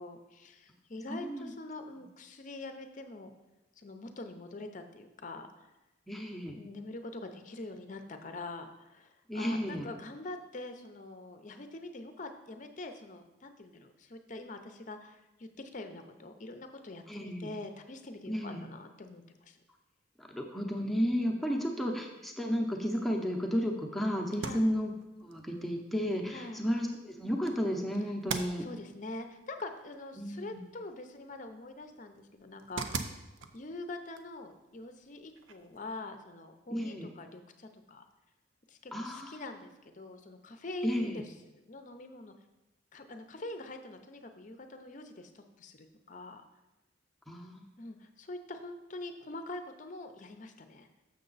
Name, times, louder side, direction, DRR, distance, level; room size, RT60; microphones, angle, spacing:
voice 1, 0.0-3.3 3.8-5.7 6.5-19.6 21.4-21.9 24.4-24.7 26.3-26.6 28.6-33.1 33.5-38.0 38.7-42.3 42.9-46.4 47.8-50.9, left 2 dB, 40° left, 7 dB, 0.6 m, -44 dB
voice 2, 1.1-1.5 6.1-6.6 9.3-9.9 17.1-17.5 18.3-18.7 20.2-24.9 25.2-28.7 30.2-30.6 36.7-37.1 38.9-39.4 40.8-41.2 47.3-47.6, equal, ahead, 0 dB, 0.7 m, -33 dB
sound 1, 24.3-35.9, right 5 dB, 80° right, 0.6 m, -45 dB
6.7 x 6.6 x 4.0 m, 1.0 s
head